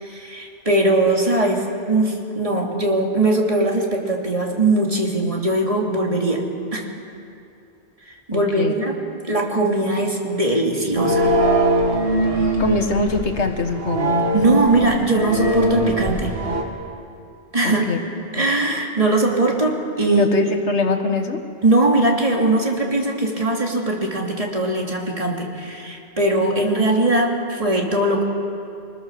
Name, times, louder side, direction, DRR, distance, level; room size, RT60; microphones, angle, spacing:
voice 1, 0.0-6.4 6.7-6.8 8.3-9.0 9.2-11.3 14.3-16.3 17.5-17.9 18.3-20.2 21.6-28.2, right 2 dB, 30° right, 0 dB, 2.8 m, -20 dB
voice 2, 8.3-8.7 12.6-14.3 17.6-18.0 20.1-21.4, left 2 dB, 65° left, 5 dB, 2.0 m, -22 dB
sound 1, 10.9-16.6, right 1 dB, 50° right, 2.7 m, -21 dB
24.5 x 20.5 x 6.9 m, 2.6 s
omnidirectional pair, 1.3 m